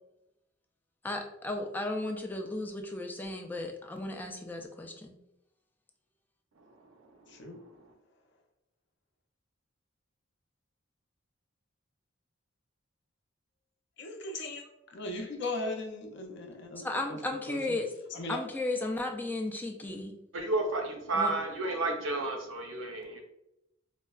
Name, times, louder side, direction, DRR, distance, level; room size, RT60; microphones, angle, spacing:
voice 1, 1.0-5.2 16.8-17.9 18.3-20.2 21.1-21.3, left 2 dB, 10° left, 2 dB, 0.3 m, -35 dB
voice 2, 7.3-7.6 14.0-17.2 17.5-17.8 18.1-18.4, left 2 dB, 65° left, 4 dB, 0.5 m, -38 dB
voice 3, 20.3-23.2, right 2 dB, 80° right, 2 dB, 0.7 m, -32 dB
4.2 x 2.1 x 2.3 m, 0.85 s
head